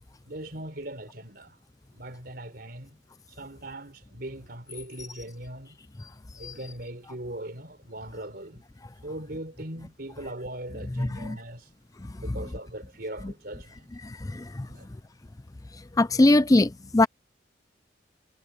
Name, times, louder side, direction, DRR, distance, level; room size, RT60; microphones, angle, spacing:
voice 1, 0.2-1.6 1.9-3.0 3.3-5.8 6.4-8.6 9.0-11.7 12.2-13.9 14.7-14.9, right 1 dB, 55° right, 4.8 m, -40 dB
voice 2, 11.0-11.4 14.0-14.7 16.0-17.1, left 2 dB, 20° left, 0.5 m, -22 dB
head